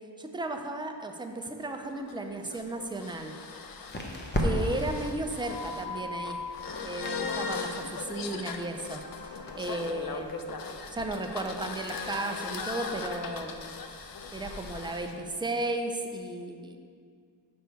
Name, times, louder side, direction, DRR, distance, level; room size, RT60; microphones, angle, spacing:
voice 1, 0.2-3.4 4.4-6.4 6.8-10.5 10.9-13.8 14.3-16.8, right 2 dB, 10° right, 4 dB, 0.4 m, -35 dB
sound 1, 1.4-15.1, left 4 dB, 55° left, 0.5 m, -39 dB
sound 2, 2.6-15.0, equal, 25° left, 0.8 m, -40 dB
6.4 x 5.2 x 4.5 m, 2.1 s
wide cardioid pair, 145°, 44 cm